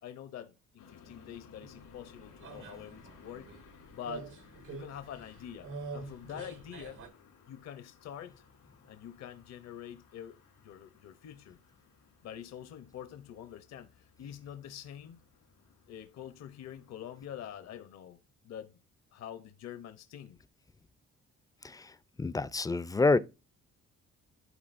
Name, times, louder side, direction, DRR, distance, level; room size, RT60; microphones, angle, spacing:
voice 1, 0.0-3.5 3.9-4.3 4.7-7.0 7.5-8.4 8.9-11.6 12.2-15.2 15.9-18.2 18.4-18.8 19.1-20.4, left 10 dB, 60° left, 0.7 m, -46 dB
sound 1, 0.8-17.8, left 6 dB, 90° left, 2.5 m, -60 dB
sound 2, 1.6-7.1, right 4 dB, 90° right, 1.5 m, -46 dB
voice 2, 21.6-23.2, left 3 dB, 10° left, 0.3 m, -28 dB
11.0 x 3.9 x 2.5 m
cardioid pair, 90°, 30 cm